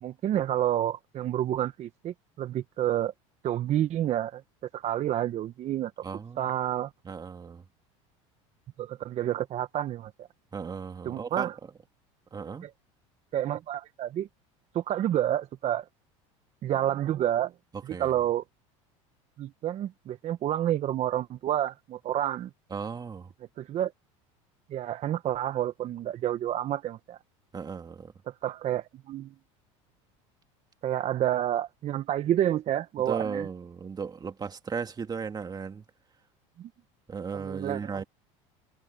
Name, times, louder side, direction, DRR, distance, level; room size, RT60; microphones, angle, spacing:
voice 1, 0.0-3.1 3.4-4.4 4.7-6.0 6.4-6.9 8.8-10.3 11.0-11.6 12.6-12.7 13.3-14.3 14.7-15.9 16.6-17.5 17.8-18.4 19.4-22.5 23.6-23.9 24.7-27.2 28.3-29.3 30.8-33.5 36.6-36.7 37.3-38.0, right 12 dB, 45° right, 1.1 m, -29 dB
voice 2, 6.0-6.5 7.0-7.6 10.5-11.5 12.3-12.7 17.9-18.1 22.7-23.3 27.5-28.1 33.1-35.8 37.1-38.0, right 5 dB, 25° right, 2.5 m, -36 dB
supercardioid pair, 95°, 16 cm